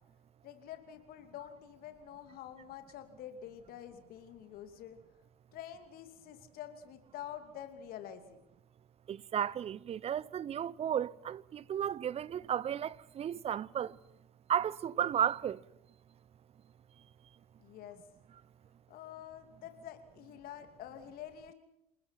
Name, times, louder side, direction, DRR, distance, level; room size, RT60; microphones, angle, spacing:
voice 1, 0.4-5.0 5.5-8.4 17.6-18.0 18.9-21.5, left 10 dB, 50° left, 2.8 m, -47 dB
voice 2, 9.1-14.0 14.5-15.6, right 9 dB, 30° right, 0.8 m, -34 dB
28.0 x 21.0 x 5.9 m
figure-of-eight pair, 65°, 20 cm